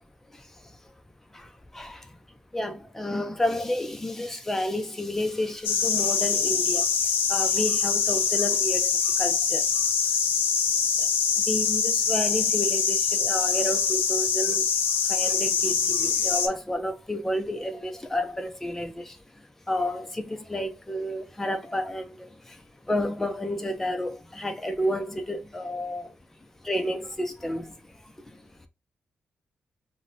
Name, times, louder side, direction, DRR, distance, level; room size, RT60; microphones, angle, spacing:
voice 1, 2.5-6.8 7.3-8.9 9.2-9.6 11.5-14.6 15.1-19.0 19.7-22.1 22.9-26.1 26.6-27.7, left 1 dB, 10° left, 0.4 m, -30 dB
sound 1, 5.6-16.5, left 6 dB, 75° left, 0.5 m, -24 dB
2.6 x 2.5 x 3.0 m
wide cardioid pair, 175°, 4 cm